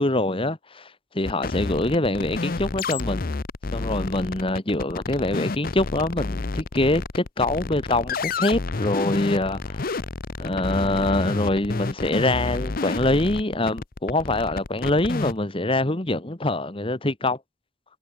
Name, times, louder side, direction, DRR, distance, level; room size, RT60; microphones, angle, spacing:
voice 1, 0.0-3.2 3.7-9.9 10.4-17.4, left 2 dB, 25° left, 1.5 m, -24 dB
sound 1, 1.2-15.4, left 3 dB, 45° left, 0.8 m, -30 dB
head